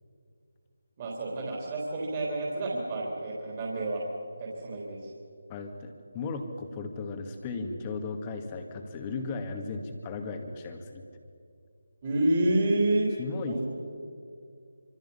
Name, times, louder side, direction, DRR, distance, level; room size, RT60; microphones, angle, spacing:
voice 1, 1.0-4.0 4.4-5.1 12.0-13.1 13.4-13.6, right 1 dB, 25° right, -3 dB, 3.9 m, -28 dB
voice 2, 5.5-11.0 13.2-13.6, left 4 dB, 20° left, 5 dB, 2.2 m, -36 dB
26.0 x 25.5 x 5.8 m, 2.4 s
figure-of-eight pair, 160°, 0 cm